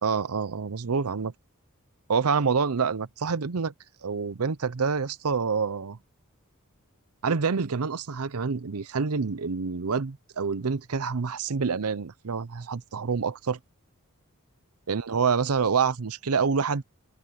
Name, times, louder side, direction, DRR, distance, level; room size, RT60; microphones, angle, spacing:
voice 1, 0.0-1.3 2.1-3.7 4.0-6.0 7.2-13.6 14.9-16.8, right 5 dB, 80° right, 0.7 m, -27 dB
open air
head